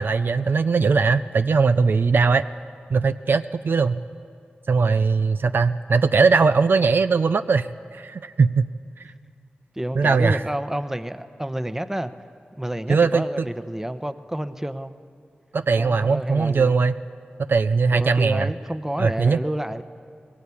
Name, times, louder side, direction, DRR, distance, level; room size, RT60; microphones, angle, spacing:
voice 1, 0.0-2.4 2.9-4.0 4.7-7.7 7.9-8.7 10.0-10.4 12.9-13.2 15.5-16.9 17.4-18.5 19.0-19.4, right 4 dB, 70° right, 11 dB, 0.5 m, -20 dB
voice 2, 9.8-12.1 12.6-15.0 15.7-16.7 17.9-19.8, right 1 dB, 10° right, 11 dB, 0.9 m, -29 dB
19.5 x 17.0 x 8.5 m, 2.4 s
cardioid pair, 50°, 4 cm